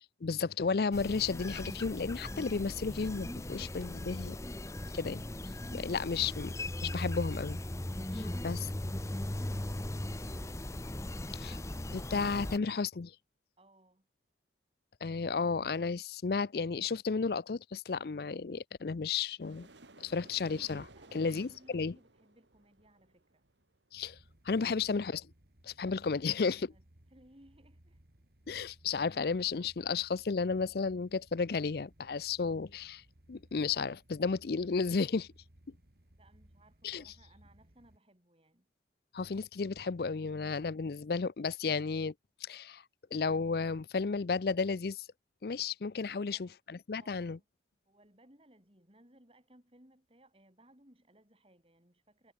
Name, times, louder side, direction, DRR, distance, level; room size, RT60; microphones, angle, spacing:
voice 1, 0.0-4.4 4.9-5.2 5.7-6.5 6.8-7.6 8.1-8.6 11.3-11.6 11.9-13.1 15.0-19.7 20.0-20.9 21.1-21.9 23.9-24.2 24.5-25.3 25.6-26.7 28.5-33.0 33.3-35.3 36.8-37.0 39.1-42.1 42.5-42.8 43.1-45.1 45.4-47.4, left 4 dB, 60° left, 0.5 m, -33 dB
sound 1, 0.9-12.6, left 1 dB, 15° left, 0.8 m, -38 dB
voice 2, 8.2-10.3 13.6-14.1 20.9-23.4 26.1-28.0 36.1-38.7 46.2-46.5 47.0-47.5 47.8-52.3, right 1 dB, 30° right, 5.2 m, -63 dB
sound 2, 19.4-23.8, right 2 dB, 85° right, 3.3 m, -56 dB
sound 3, 24.0-38.0, right 1 dB, 55° right, 2.9 m, -62 dB
head